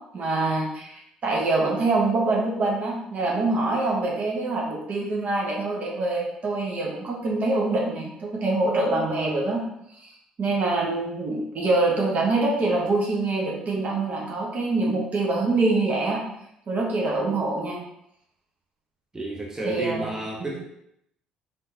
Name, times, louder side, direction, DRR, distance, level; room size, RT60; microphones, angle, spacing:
voice 1, 0.0-9.6 10.0-10.1 10.4-16.2 16.7-17.8 19.6-20.1 20.4-20.6, right 2 dB, 50° right, -2 dB, 1.2 m, -25 dB
voice 2, 19.1-20.6, right 2 dB, 20° right, -2 dB, 0.9 m, -31 dB
3.7 x 3.5 x 2.7 m, 0.75 s
hypercardioid pair, 50°, 3 cm